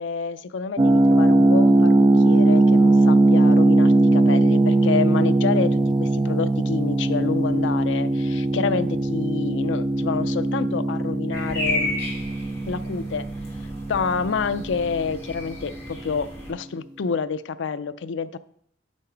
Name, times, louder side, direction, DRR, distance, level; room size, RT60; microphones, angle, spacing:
voice 1, 0.0-12.0 12.6-13.3 13.9-18.4, left 5 dB, 70° left, 14 dB, 0.4 m, -28 dB
sound 1, 0.8-15.5, right 2 dB, 25° right, 0.3 m, -20 dB
sound 2, 11.3-16.5, left 1 dB, 15° left, 2.9 m, -33 dB
8.6 x 5.7 x 4.5 m, 0.67 s
head